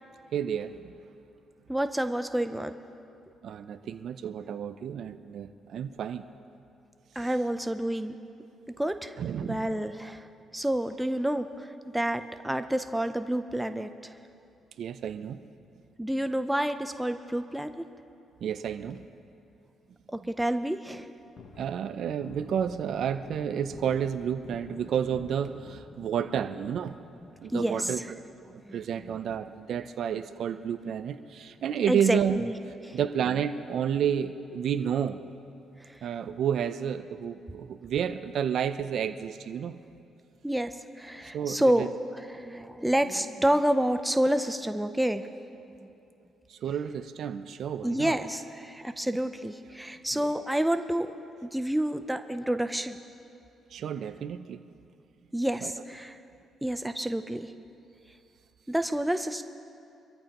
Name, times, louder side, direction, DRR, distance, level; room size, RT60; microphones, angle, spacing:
voice 1, 0.3-0.9 3.4-6.2 7.2-7.3 9.2-9.8 14.8-15.4 18.4-19.0 21.6-27.0 27.4-28.2 28.5-32.4 32.9-35.2 36.0-39.8 41.3-41.9 46.5-48.2 50.1-50.3 53.7-54.6 55.6-55.7, right 8 dB, 65° right, 10 dB, 0.5 m, -31 dB
voice 2, 1.7-2.7 7.2-8.1 8.8-10.3 10.5-14.1 16.0-17.8 20.1-21.1 26.0-26.1 27.2-28.1 28.7-28.8 31.9-32.5 32.8-33.0 35.8-36.0 40.4-41.9 42.1-45.3 45.8-45.9 47.8-51.1 51.4-53.0 55.3-56.2 56.6-57.5 58.7-59.4, right 1 dB, 5° right, 8 dB, 0.5 m, -29 dB
Thunder, 21.1-31.7 32.0-32.1 32.5-34.0 34.3-34.4 34.8-35.6 36.0-36.1 36.4-36.5 38.9-39.5, left 4 dB, 55° left, 1.1 m, -51 dB
24.0 x 14.0 x 3.0 m, 2.7 s
cardioid pair, 90°, 0 cm